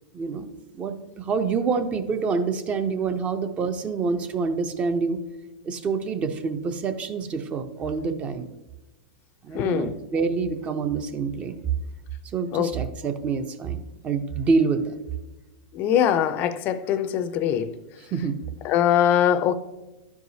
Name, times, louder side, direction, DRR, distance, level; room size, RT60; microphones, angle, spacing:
voice 1, 0.1-0.5 0.7-5.2 5.6-8.5 9.4-11.6 12.3-14.9 18.0-18.4, right 5 dB, 25° right, 0.6 m, -27 dB
voice 2, 9.5-9.9 12.5-12.7 15.7-17.7 18.6-19.5, left 10 dB, 40° left, 0.5 m, -22 dB
12.0 x 4.7 x 2.7 m
hypercardioid pair, 125°, 5 cm